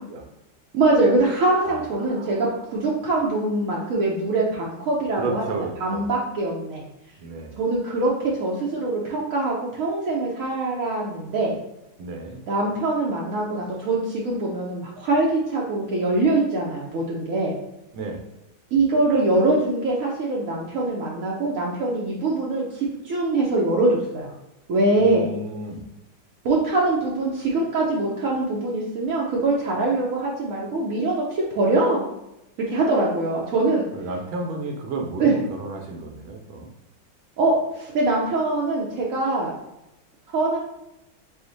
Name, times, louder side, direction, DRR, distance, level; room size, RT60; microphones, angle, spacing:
voice 1, 0.7-5.4 5.8-6.8 7.6-11.6 12.5-17.5 18.7-24.3 24.7-25.3 26.4-32.1 32.7-33.8 35.2-35.3 37.4-39.5 40.3-40.6, right 2 dB, 70° right, -4 dB, 0.7 m, -23 dB
voice 2, 1.6-2.4 5.2-6.1 7.2-7.6 12.0-12.4 17.9-18.2 25.0-25.9 33.9-36.7, right 2 dB, 85° right, 2 dB, 1.6 m, -32 dB
5.1 x 2.1 x 3.9 m, 0.90 s
omnidirectional pair, 2.2 m